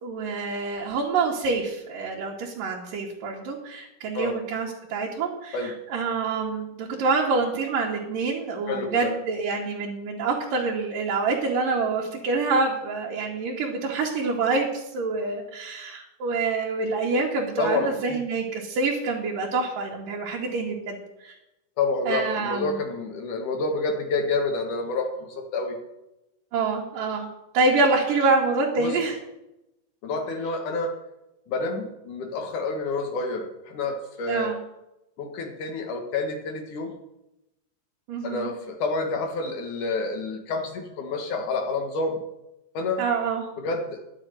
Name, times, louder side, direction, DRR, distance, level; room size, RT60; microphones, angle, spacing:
voice 1, 0.0-21.0 21.2-21.3 22.1-22.8 26.5-27.3 27.5-29.2 34.3-34.6 38.1-38.5 43.0-43.4, right 3 dB, 80° right, -4 dB, 3.5 m, -26 dB
voice 2, 8.7-9.1 17.6-18.2 21.8-25.8 28.8-28.9 30.0-30.9 31.5-34.5 35.2-36.9 38.2-42.2 42.7-43.0 43.6-44.0, left 3 dB, 70° left, 4 dB, 3.2 m, -28 dB
11.5 x 7.0 x 9.3 m, 0.90 s
omnidirectional pair, 3.8 m